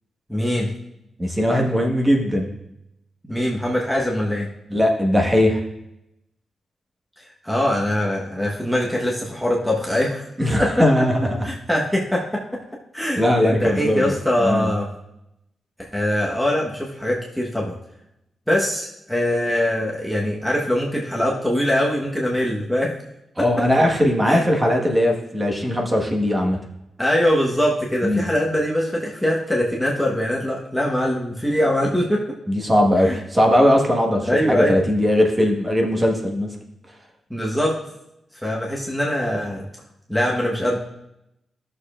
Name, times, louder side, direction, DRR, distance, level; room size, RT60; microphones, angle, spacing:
voice 1, 0.3-0.7 3.2-4.5 7.2-10.2 10.6-10.9 11.4-12.6 12.9-14.9 15.9-17.8 18.5-23.0 23.4-23.7 24.2-24.5 27.0-32.3 33.0-33.2 34.3-34.8 37.3-37.8 38.4-39.6 40.1-40.8, left 1 dB, ahead, -4 dB, 1.2 m, -22 dB
voice 2, 1.2-2.5 4.7-5.6 10.4-11.5 13.2-14.1 14.4-14.8 23.4-26.6 28.0-28.2 32.5-36.5, left 1 dB, 20° right, 0 dB, 1.4 m, -19 dB
14.0 x 6.7 x 2.5 m, 0.85 s
cardioid pair, 105°, 0 cm